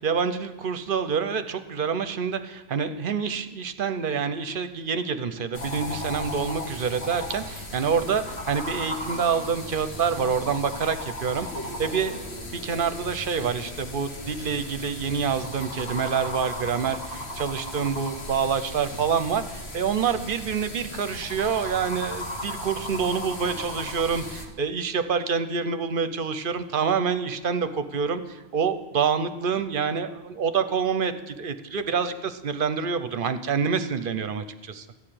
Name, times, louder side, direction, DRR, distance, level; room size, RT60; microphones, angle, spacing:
voice 1, 0.0-11.5 11.8-12.2 12.5-34.9, right 6 dB, 60° right, 10 dB, 0.8 m, -27 dB
sound 1, 5.5-24.4, left 1 dB, 85° left, 1.6 m, -36 dB
14.5 x 4.9 x 8.8 m, 1.0 s
omnidirectional pair, 1.1 m